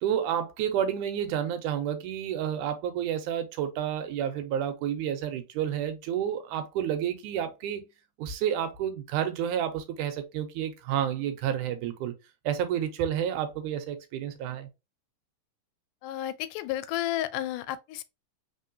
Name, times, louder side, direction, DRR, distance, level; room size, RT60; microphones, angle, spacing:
voice 1, 0.0-7.9 8.2-12.1 12.5-14.7, right 9 dB, 80° right, 2.2 m, -30 dB
voice 2, 16.0-18.0, left 13 dB, 85° left, 2.1 m, -32 dB
4.1 x 3.8 x 2.7 m
omnidirectional pair, 3.6 m